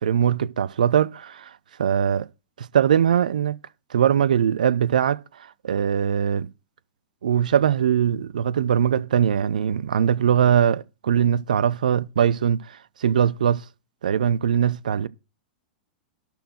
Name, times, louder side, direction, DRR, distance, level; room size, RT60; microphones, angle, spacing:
voice 1, 0.0-1.5 1.8-2.3 2.6-3.6 3.9-5.2 5.6-6.5 7.2-13.6 14.0-15.1, right 8 dB, 65° right, 0.5 m, -21 dB
12.0 x 4.4 x 7.7 m
figure-of-eight pair, 95°, 5 cm